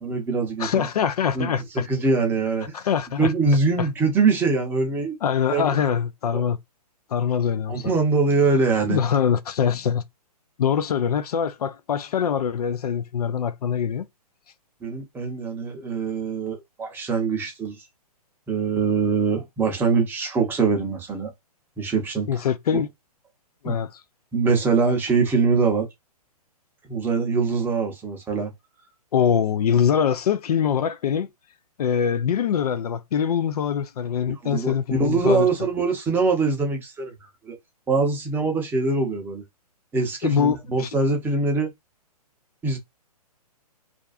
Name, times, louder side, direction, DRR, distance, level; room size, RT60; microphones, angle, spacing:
voice 1, 0.0-0.9 1.3-2.8 3.2-5.2 5.5-5.7 6.3-6.4 7.7-9.0 14.8-17.8 18.5-21.3 21.8-22.5 22.7-22.8 23.6-23.7 24.3-25.9 26.9-28.5 34.4-37.6 37.9-39.4 39.9-41.7 42.6-42.8, right 4 dB, 10° right, 0.7 m, -23 dB
voice 2, 0.6-1.9 2.7-3.3 5.2-6.6 7.1-7.9 8.9-10.0 10.6-14.0 22.3-22.9 23.6-23.9 29.1-31.3 31.8-35.5 40.2-40.9, left 8 dB, 70° left, 0.4 m, -23 dB
2.5 x 2.3 x 2.4 m
hypercardioid pair, 135°, 20 cm